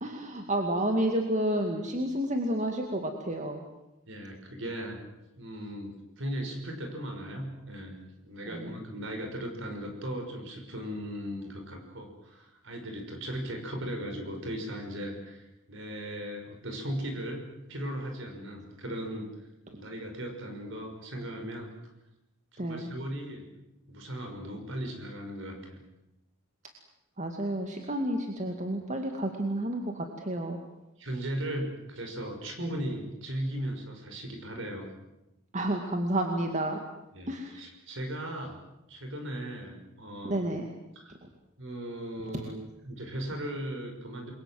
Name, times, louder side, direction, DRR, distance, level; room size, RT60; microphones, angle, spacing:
voice 1, 0.0-3.6 8.5-8.8 22.6-22.9 27.2-30.6 35.5-36.8 37.3-37.6 40.2-40.7 41.2-41.3 42.3-42.4, right 1 dB, 35° right, 3 dB, 2.2 m, -30 dB
voice 2, 4.1-5.0 5.4-8.0 8.2-19.3 19.7-21.7 22.5-23.5 23.9-25.8 31.0-34.9 37.1-38.6 38.9-40.5 41.0-41.1 41.6-42.6 42.8-44.3, right 1 dB, 60° right, 3 dB, 6.0 m, -37 dB
28.5 x 22.5 x 7.9 m, 0.91 s
head